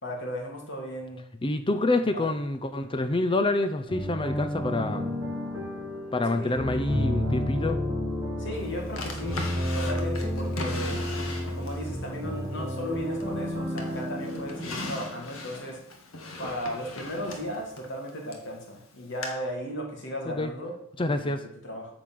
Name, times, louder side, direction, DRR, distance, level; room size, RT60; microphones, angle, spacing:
voice 1, 0.0-1.2 2.1-2.3 6.3-6.7 8.4-11.1 11.5-15.8 16.4-21.4 21.6-21.9, equal, 60° left, 0 dB, 2.7 m, -36 dB
voice 2, 1.4-5.2 6.1-7.8 20.3-20.5 21.0-21.4, left 2 dB, 25° left, 10 dB, 0.6 m, -27 dB
sound 1, 3.9-15.6, left 1 dB, 10° right, 3.6 m, -31 dB
Drawer open or close, 9.0-11.9 12.4-13.4 13.8-18.5 19.2-19.3, left 2 dB, 75° left, 1.8 m, -38 dB
9.1 x 5.0 x 7.8 m, 0.74 s
head